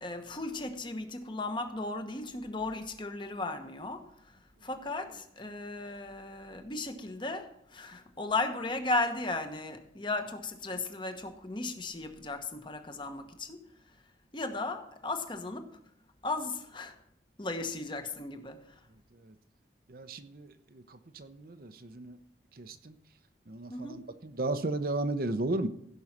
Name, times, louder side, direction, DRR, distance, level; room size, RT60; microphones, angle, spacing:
voice 1, 0.0-4.0 4.6-7.5 7.7-13.6 14.3-15.6 16.2-16.9 17.4-18.6 23.7-24.0, left 2 dB, 25° left, 7 dB, 1.1 m, -35 dB
voice 2, 18.9-19.4 19.9-22.2 22.5-23.0 23.5-25.7, right 2 dB, 55° right, 10 dB, 0.7 m, -35 dB
16.0 x 5.5 x 5.9 m, 0.74 s
head